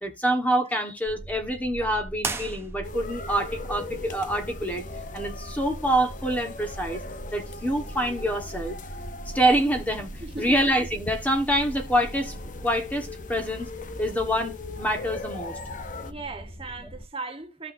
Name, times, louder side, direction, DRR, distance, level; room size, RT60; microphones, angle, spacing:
voice 1, 0.0-4.8 5.1-7.0 7.3-8.8 9.2-12.3 12.6-13.7 14.0-15.6, right 1 dB, 10° left, 1.4 m, -26 dB
sound 1, 1.1-17.0, right 1 dB, 70° left, 2.4 m, -42 dB
sound 2, 2.2-3.2, right 3 dB, 15° right, 0.9 m, -34 dB
sound 3, 2.8-16.1, left 3 dB, 45° left, 0.9 m, -40 dB
voice 2, 10.2-10.6 16.0-17.7, right 3 dB, 30° right, 1.2 m, -37 dB
14.5 x 5.8 x 2.7 m
head